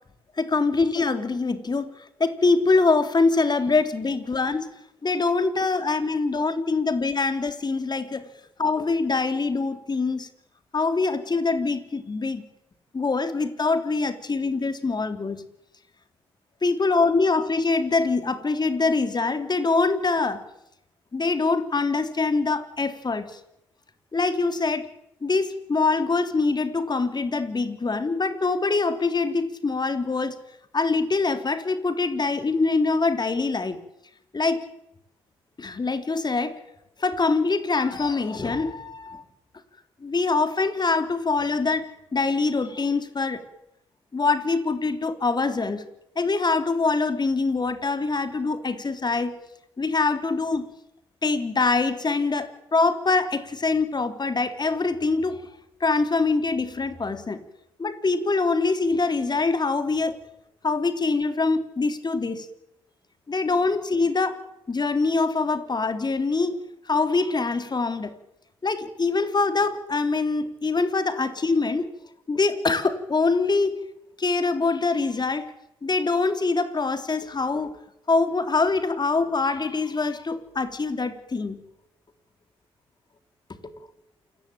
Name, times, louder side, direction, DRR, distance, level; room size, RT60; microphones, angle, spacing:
voice 1, 0.4-4.7 5.0-8.3 8.6-10.3 10.7-12.4 12.9-15.4 16.6-20.5 21.1-23.4 24.1-24.9 25.2-30.4 30.7-33.8 34.3-34.6 35.6-36.6 37.0-39.2 40.0-43.4 44.1-45.8 46.2-49.4 49.8-50.7 51.2-55.4 55.8-57.4 57.8-60.2 60.6-62.5 63.3-64.4 64.7-66.6 66.9-68.2 68.6-71.9 72.3-73.8 74.2-75.5 75.8-77.8 78.1-81.6 83.6-83.8, left 3 dB, 35° left, 9 dB, 3.6 m, -24 dB
28.0 x 18.5 x 9.0 m, 0.85 s
hypercardioid pair, 45°, 12 cm